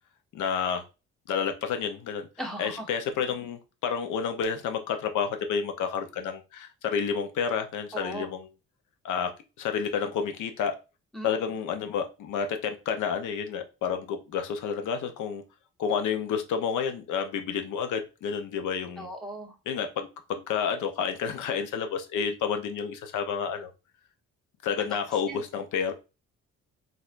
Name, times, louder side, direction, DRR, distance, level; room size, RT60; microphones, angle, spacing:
voice 1, 0.3-0.8 1.3-2.3 2.6-8.5 9.0-9.3 9.6-10.8 11.2-15.4 15.8-19.1 19.7-23.7 24.6-25.9, left 7 dB, 80° left, 6 dB, 0.7 m, -30 dB
voice 2, 2.4-2.9 7.9-8.3 11.1-11.5 19.0-19.6 24.8-25.0 25.3-25.4, right 1 dB, ahead, 0 dB, 1.2 m, -38 dB
4.2 x 2.6 x 2.5 m, 0.29 s
cardioid pair, 90°, 30 cm